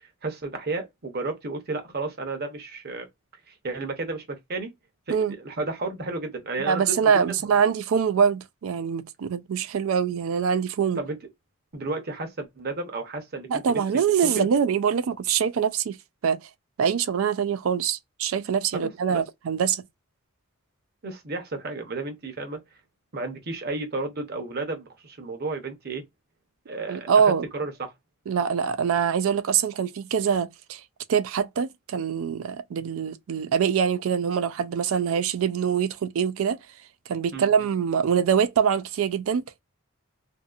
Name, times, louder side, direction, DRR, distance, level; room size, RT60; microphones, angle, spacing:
voice 1, 0.0-3.1 3.5-4.7 5.1-7.2 11.0-11.2 11.7-14.0 14.4-14.5 18.7-19.2 21.0-22.6 23.1-26.0 26.7-27.9 37.3-37.7, right 3 dB, 45° right, 0.8 m, -33 dB
voice 2, 6.7-11.0 13.5-16.0 16.2-16.4 16.8-19.8 26.9-27.5 28.3-30.8 31.1-36.6 37.1-39.6, right 7 dB, 70° right, 0.3 m, -24 dB
2.7 x 2.6 x 2.3 m
head